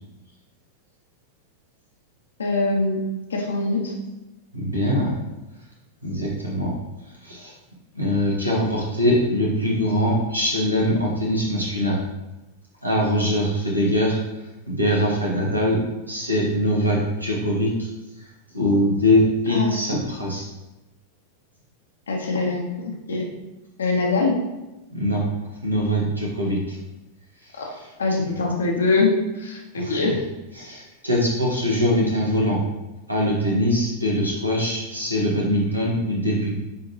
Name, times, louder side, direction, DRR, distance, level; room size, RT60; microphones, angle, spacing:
voice 1, 2.4-3.0 3.3-3.9 19.5-19.7 22.1-23.3 23.8-24.4 27.6-27.7 28.0-30.2, left 3 dB, 70° left, 0 dB, 1.3 m, -23 dB
voice 2, 4.5-5.2 6.0-6.7 7.2-7.5 8.0-12.0 12.8-14.2 14.7-15.8 16.1-17.9 18.2-18.3 18.5-20.5 24.9-25.2 25.6-26.8 27.5-27.9 29.8-30.1 30.6-32.6 33.1-36.5, equal, 85° right, -3 dB, 1.8 m, -22 dB
9.3 x 3.8 x 3.1 m, 1.0 s
figure-of-eight pair, 90°, 0 cm